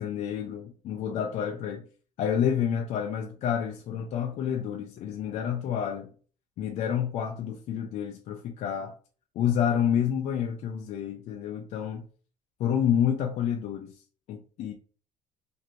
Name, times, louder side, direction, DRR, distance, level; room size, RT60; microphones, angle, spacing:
voice 1, 0.0-1.8 2.2-6.1 6.6-8.9 9.4-12.1 12.6-13.9 14.3-14.7, left 8 dB, 50° left, 0.4 m, -29 dB
2.6 x 2.5 x 2.9 m
cardioid pair, 140°, 14 cm